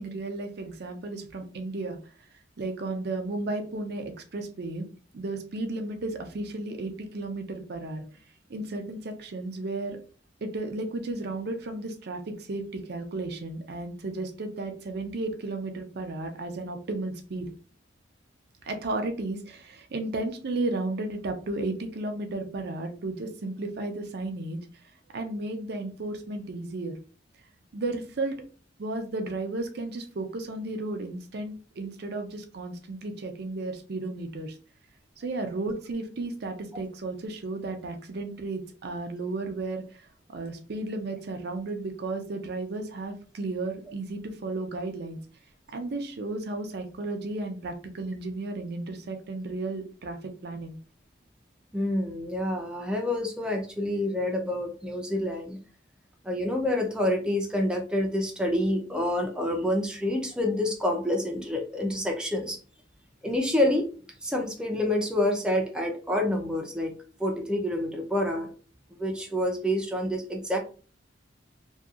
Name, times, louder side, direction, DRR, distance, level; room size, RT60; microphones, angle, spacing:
voice 1, 0.0-2.0 2.6-4.9 5.1-8.2 8.5-10.0 10.4-17.5 18.6-24.6 25.1-27.0 27.7-28.4 28.8-34.6 35.2-39.8 40.3-45.2 45.7-50.8, right 2 dB, 60° right, 6 dB, 0.5 m, -34 dB
voice 2, 51.7-55.6 56.2-62.6 63.2-63.9 64.2-66.9 67.2-68.5 69.0-70.6, left 1 dB, 5° right, 1 dB, 0.4 m, -27 dB
2.7 x 2.3 x 2.3 m, 0.37 s
head